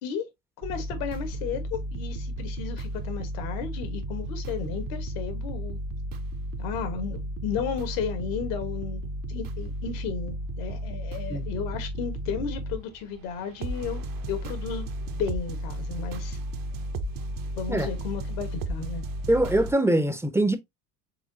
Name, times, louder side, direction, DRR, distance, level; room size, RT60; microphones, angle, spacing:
voice 1, 0.6-5.8 6.6-9.0 9.3-14.0 14.3-16.4 17.5-19.0, left 7 dB, 70° left, 1.5 m, -34 dB
sound 1, 0.6-19.7, right 1 dB, 45° right, 0.9 m, -34 dB
voice 2, 19.3-20.6, right 1 dB, 5° right, 0.7 m, -23 dB
4.8 x 3.7 x 2.7 m
hypercardioid pair, 80°, 48 cm